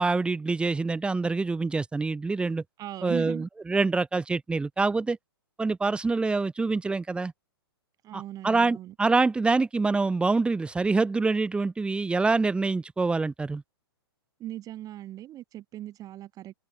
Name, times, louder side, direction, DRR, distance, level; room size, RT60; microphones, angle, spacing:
voice 1, 0.0-2.6 3.0-5.2 5.6-7.3 8.1-13.6, right 3 dB, 10° right, 1.0 m, -26 dB
voice 2, 2.8-3.5 8.0-8.9 14.4-16.5, right 13 dB, 25° right, 3.5 m, -39 dB
figure-of-eight pair, 110°, 13 cm